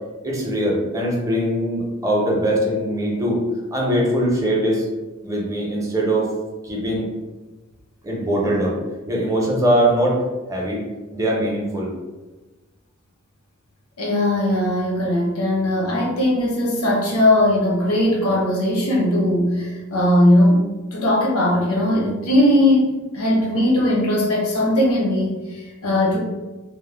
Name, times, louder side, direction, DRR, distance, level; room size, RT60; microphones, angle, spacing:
voice 1, 0.2-3.4 3.7-4.9 5.2-6.3 6.6-7.1 8.0-8.7 9.1-10.2 10.5-10.8 11.1-11.9, right 1 dB, 15° right, -3 dB, 0.6 m, -21 dB
voice 2, 14.0-20.6 20.9-26.2, left 1 dB, 80° left, -2 dB, 0.7 m, -19 dB
2.1 x 2.0 x 3.2 m, 1.1 s
head